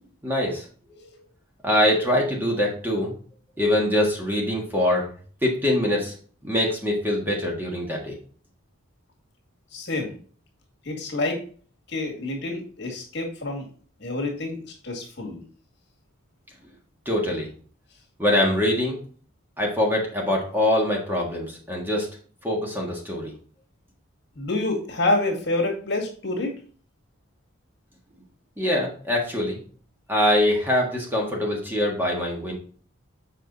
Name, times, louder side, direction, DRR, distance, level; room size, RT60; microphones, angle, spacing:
voice 1, 0.2-0.7 1.6-3.1 3.6-5.1 5.4-6.1 6.4-8.2 17.0-17.5 18.2-19.0 19.6-22.1 22.4-23.3 28.6-29.6 30.1-32.5, left 1 dB, 10° right, -1 dB, 1.6 m, -23 dB
voice 2, 9.7-10.1 10.8-11.4 11.9-13.7 14.0-15.4 24.4-26.5, left 2 dB, 55° left, 0 dB, 2.2 m, -27 dB
7.5 x 5.0 x 4.0 m, 0.43 s
head